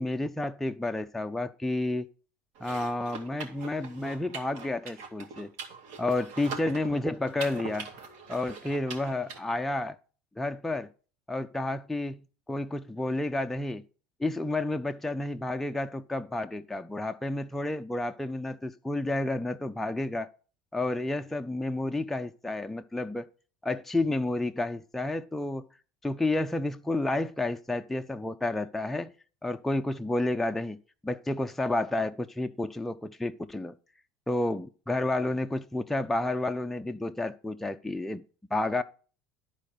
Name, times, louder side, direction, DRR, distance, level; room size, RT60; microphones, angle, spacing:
voice 1, 0.0-2.1 2.6-5.5 6.0-7.9 8.3-10.0 10.4-10.9 11.3-12.2 12.5-13.8 14.2-20.3 20.7-23.3 23.6-25.7 26.0-29.1 29.4-30.8 31.0-33.7 34.3-38.2 38.5-38.8, left 2 dB, 5° left, 0.4 m, -30 dB
sound 1, 2.6-9.4, right 5 dB, 65° right, 2.3 m, -43 dB
12.5 x 4.2 x 6.6 m
supercardioid pair, 130°, 6 cm